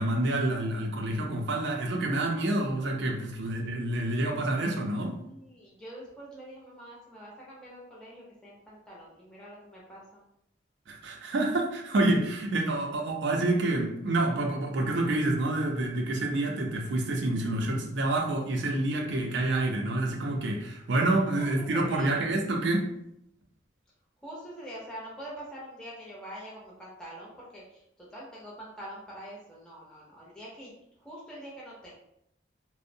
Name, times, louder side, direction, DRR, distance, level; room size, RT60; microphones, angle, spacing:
voice 1, 0.0-5.2 10.9-22.9, right 2 dB, 65° right, 2 dB, 0.4 m, -28 dB
voice 2, 4.9-10.2 21.4-22.1 24.2-30.7 31.0-31.9, right 1 dB, 5° left, -6 dB, 0.5 m, -45 dB
2.5 x 2.0 x 2.6 m, 0.78 s
head